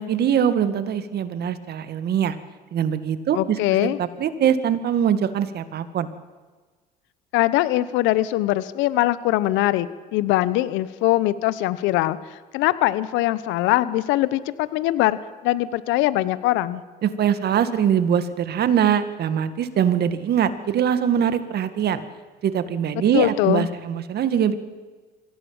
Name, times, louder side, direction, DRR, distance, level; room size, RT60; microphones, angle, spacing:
voice 1, 0.0-2.4 2.7-6.1 17.0-22.0 22.4-24.6, right 8 dB, 55° right, 11 dB, 2.0 m, -22 dB
voice 2, 3.3-4.0 7.3-15.2 15.4-16.8 23.1-23.7, left 16 dB, 70° left, 16 dB, 1.1 m, -22 dB
24.0 x 16.5 x 8.9 m, 1.4 s
hypercardioid pair, 70°, 20 cm